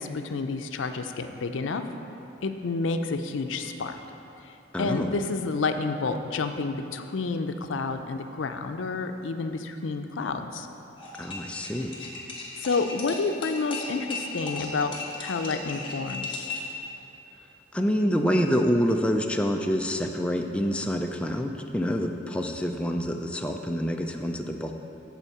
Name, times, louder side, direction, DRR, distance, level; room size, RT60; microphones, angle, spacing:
voice 1, 0.0-1.8 2.4-4.0 4.4-10.7 12.6-16.5, left 4 dB, 90° left, 7 dB, 0.5 m, -30 dB
voice 2, 4.7-5.1 11.2-11.9 17.7-24.7, equal, 5° left, 3 dB, 0.3 m, -27 dB
sound 1, 11.0-16.8, left 3 dB, 25° left, 1.2 m, -36 dB
8.3 x 4.3 x 7.1 m, 2.8 s
head